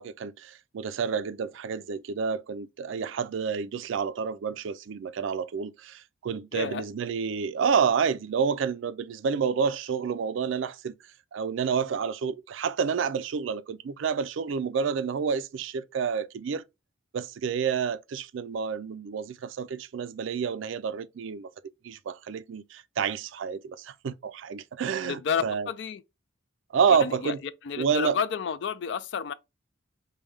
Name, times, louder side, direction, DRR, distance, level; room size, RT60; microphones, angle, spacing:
voice 1, 0.0-10.9 11.3-16.6 17.1-21.5 21.8-25.7 26.7-27.4 27.8-28.2, right 6 dB, 70° right, 0.3 m, -29 dB
voice 2, 6.5-6.8 25.0-26.0 26.9-27.3 27.6-29.3, left 6 dB, 60° left, 0.4 m, -30 dB
5.2 x 2.2 x 3.2 m
head